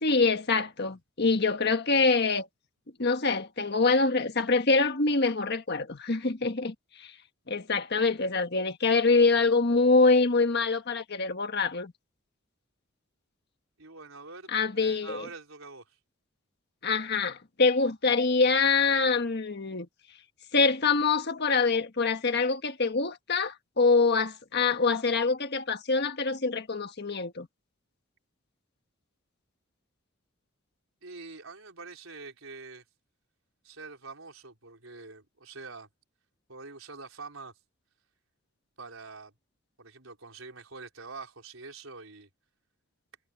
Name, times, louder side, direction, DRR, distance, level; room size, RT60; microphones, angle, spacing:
voice 1, 0.0-2.5 3.0-7.1 7.5-11.9 14.5-15.3 16.8-19.9 20.5-27.5, left 4 dB, 55° left, 1.5 m, -25 dB
voice 2, 13.8-16.0 31.0-32.8 33.6-35.9 36.5-37.5 38.8-39.3 39.8-42.3, right 4 dB, 80° right, 4.4 m, -45 dB
head